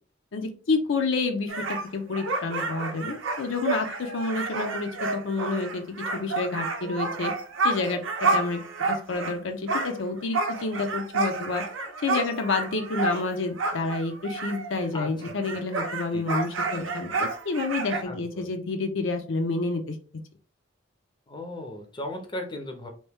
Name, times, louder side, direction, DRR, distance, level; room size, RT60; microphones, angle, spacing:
voice 1, 0.3-7.3 7.6-8.6 8.9-11.7 12.0-20.0, left 3 dB, 75° left, 6 dB, 0.5 m, -29 dB
sound 1, 1.5-9.4 9.7-14.9 15.2-18.0, right 3 dB, 80° right, 0.6 m, -30 dB
voice 2, 17.9-18.5 21.3-22.9, left 1 dB, 25° left, 3 dB, 0.5 m, -36 dB
2.9 x 2.6 x 3.4 m, 0.39 s
head